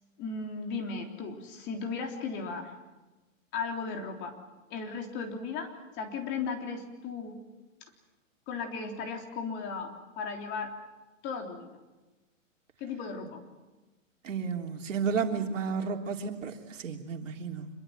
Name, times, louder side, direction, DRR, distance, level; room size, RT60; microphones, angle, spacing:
voice 1, 0.2-2.7 3.5-4.4 4.7-7.4 8.5-10.8 11.2-11.8 12.8-13.4, left 5 dB, 30° left, 3 dB, 3.5 m, -36 dB
voice 2, 14.2-17.7, right 6 dB, 70° right, 3 dB, 3.5 m, -32 dB
26.0 x 23.0 x 7.7 m, 1.1 s
hypercardioid pair, 140°, 40 cm